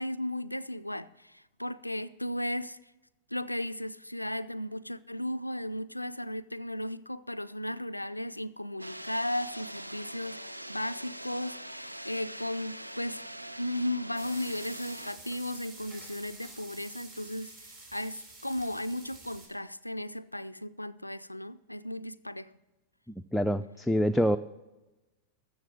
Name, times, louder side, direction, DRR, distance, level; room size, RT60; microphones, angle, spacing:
voice 1, 0.0-2.8 3.3-13.3 13.6-22.5, left 1 dB, 85° left, 0.3 m, -35 dB
sound 1, 8.8-15.1, right 1 dB, 85° right, 0.3 m, -43 dB
sound 2, 14.1-19.5, right 2 dB, 50° right, 4.8 m, -49 dB
voice 2, 23.3-24.4, equal, 5° left, 0.3 m, -25 dB
14.0 x 7.0 x 6.0 m
figure-of-eight pair, 90°, 0 cm